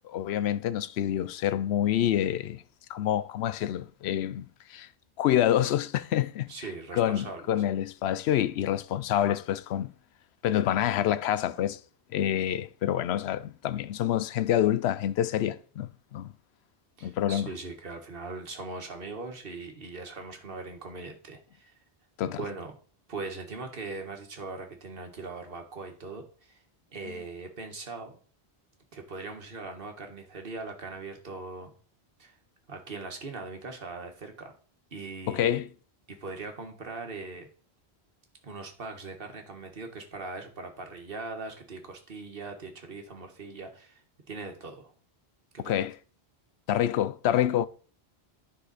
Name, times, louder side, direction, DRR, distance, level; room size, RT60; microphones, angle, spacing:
voice 1, 0.0-2.6 2.9-4.4 4.7-4.9 5.2-6.5 6.9-9.9 10.4-11.8 12.1-16.3 17.0-17.5 22.2-22.4 35.3-35.7 45.6-45.9 46.7-47.7, left 11 dB, 80° left, 0.8 m, -27 dB
voice 2, 6.5-7.6 17.0-21.8 22.2-22.7 23.1-26.6 26.9-28.2 28.9-31.7 32.2-32.4 32.7-34.5 34.9-35.6 36.1-37.5 38.4-44.0 44.3-44.9 45.5-45.9, right 3 dB, 60° right, 1.7 m, -40 dB
10.0 x 5.5 x 4.1 m
omnidirectional pair, 1.1 m